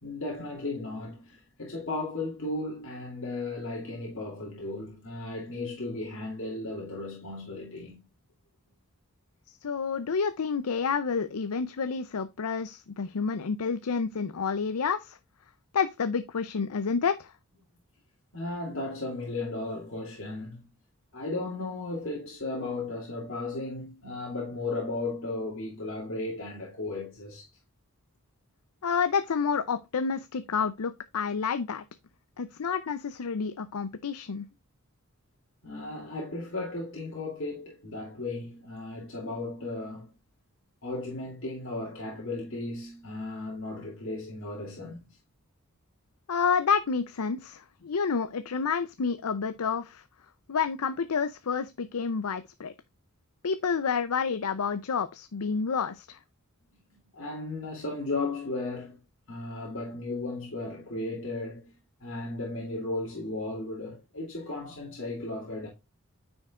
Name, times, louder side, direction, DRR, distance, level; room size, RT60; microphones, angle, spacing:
voice 1, 0.0-8.0 18.3-20.7 21.1-27.5 35.6-40.1 40.8-45.2 57.1-59.0 59.3-65.7, left 2 dB, 60° left, 2.7 m, -35 dB
voice 2, 9.6-15.2 15.7-17.3 28.8-31.8 32.4-34.5 46.3-50.0 50.5-52.7 53.4-56.2, left 5 dB, 80° left, 0.6 m, -29 dB
9.4 x 5.2 x 2.4 m
head